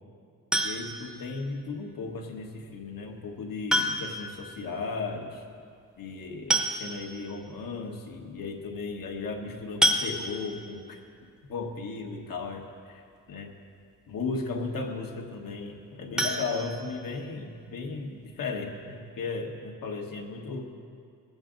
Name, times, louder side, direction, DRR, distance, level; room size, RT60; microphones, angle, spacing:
sound 1, 0.5-1.1 2.6-2.7 3.7-4.3 4.6-4.7 5.0-5.1 6.1-6.2 6.5-7.2 7.8-7.9 8.2-8.4 9.8-10.6 16.1-17.3 17.7-17.8 18.2-18.3 18.7-18.8, equal, ahead, 0.7 m, -28 dB
voice 1, 0.6-5.4 6.0-11.0 11.5-13.5 14.1-20.7, left 4 dB, 80° left, 1 dB, 1.4 m, -36 dB
20.0 x 7.9 x 3.8 m, 2.3 s
wide cardioid pair, 180°, 33 cm